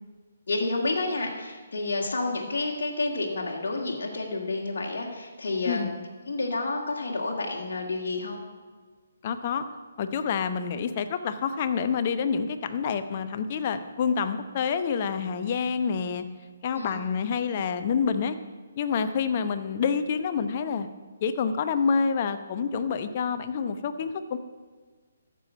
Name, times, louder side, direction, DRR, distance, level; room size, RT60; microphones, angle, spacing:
voice 1, 0.5-5.9 6.3-8.4 16.7-16.9, left 2 dB, 55° left, -2 dB, 1.9 m, -30 dB
voice 2, 9.2-9.6 10.0-16.2 16.6-18.4 18.8-20.9 21.2-24.4, left 6 dB, 40° left, 10 dB, 0.9 m, -27 dB
13.0 x 7.1 x 7.3 m, 1.5 s
figure-of-eight pair, 140°, 0 cm